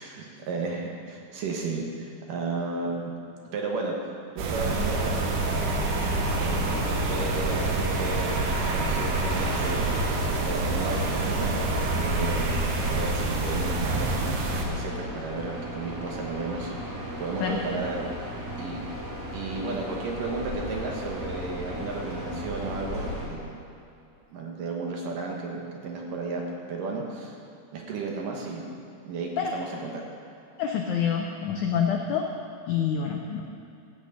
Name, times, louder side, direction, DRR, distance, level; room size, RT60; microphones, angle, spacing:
voice 1, 0.0-3.2 3.5-3.9 4.4-5.2 6.4-9.9 10.4-11.5 11.9-16.8 17.2-18.1 18.6-19.0 19.3-23.6 24.3-27.4 27.7-28.7 29.1-30.0, right 3 dB, 65° right, 0 dB, 2.6 m, -33 dB
sound 1, 4.4-14.7, right 2 dB, 80° right, 3.4 m, -26 dB
sound 2, 14.3-23.3, equal, 10° right, 1.0 m, -36 dB
voice 2, 30.6-32.2 32.7-33.4, left 7 dB, 85° left, 2 dB, 1.7 m, -26 dB
14.5 x 6.2 x 8.8 m, 2.7 s
omnidirectional pair, 4.6 m